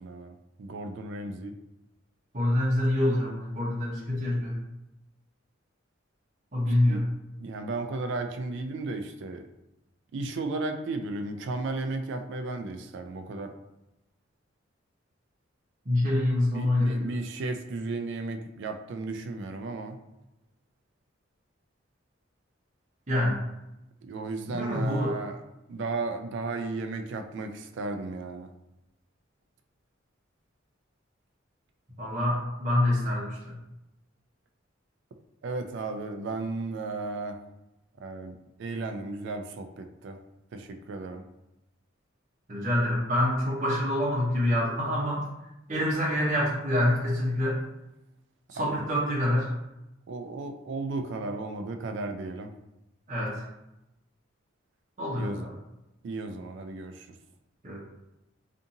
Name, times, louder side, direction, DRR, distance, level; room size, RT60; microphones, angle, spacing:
voice 1, 0.0-1.5 6.7-7.0 7.4-9.5 10.1-13.5 16.5-20.0 24.0-25.4 25.7-28.5 35.4-37.4 38.0-40.2 40.5-41.2 48.5-48.8 50.1-52.5 55.1-55.5 56.0-57.1, right 3 dB, 65° right, 6 dB, 0.3 m, -34 dB
voice 2, 2.3-4.6 6.5-7.0 15.9-17.1 23.1-23.4 24.5-25.2 32.0-33.5 42.5-45.2 45.7-47.6 48.5-49.5 53.1-53.4 55.0-55.5 57.6-57.8, left 1 dB, 40° right, -7 dB, 0.8 m, -26 dB
2.7 x 2.5 x 2.5 m, 0.92 s
head